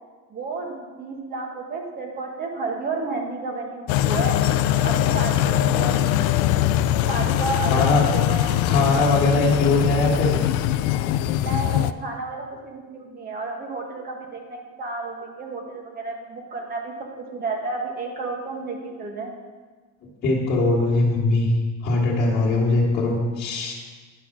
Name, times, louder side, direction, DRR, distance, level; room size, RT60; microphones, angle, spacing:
voice 1, 0.3-4.4 4.8-6.4 7.1-8.5 11.3-19.3, right 3 dB, 25° right, 2 dB, 1.3 m, -32 dB
sound 1, 3.9-11.9, left 12 dB, 80° left, 0.5 m, -21 dB
voice 2, 7.7-8.0 8.7-10.4 20.2-21.5 21.8-23.7, left 2 dB, 30° left, -7 dB, 1.9 m, -21 dB
10.0 x 6.1 x 6.1 m, 1.4 s
cardioid pair, 175°, 33 cm